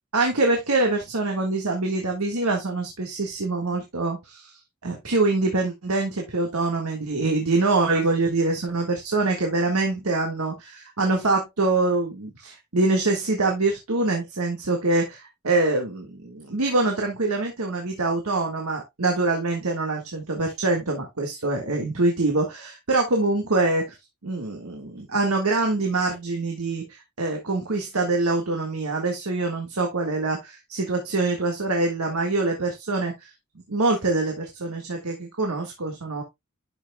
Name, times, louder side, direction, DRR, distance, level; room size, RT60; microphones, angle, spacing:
voice 1, 0.1-4.5 4.8-23.9 24.2-33.3 33.7-36.2, right 3 dB, 75° right, 1.7 m, -24 dB
11.5 x 6.0 x 2.3 m
head